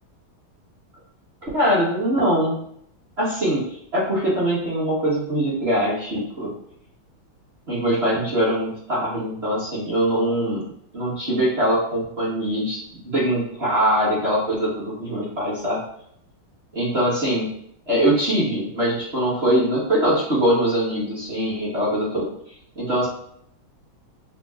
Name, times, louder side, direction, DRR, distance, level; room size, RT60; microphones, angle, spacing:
voice 1, 1.4-2.6 3.2-6.5 7.7-10.7 10.9-12.8 13.0-15.8 16.7-17.5 17.9-22.3 22.7-23.1, right 1 dB, 40° right, -8 dB, 1.1 m, -22 dB
6.1 x 2.2 x 2.3 m, 0.70 s
omnidirectional pair, 2.3 m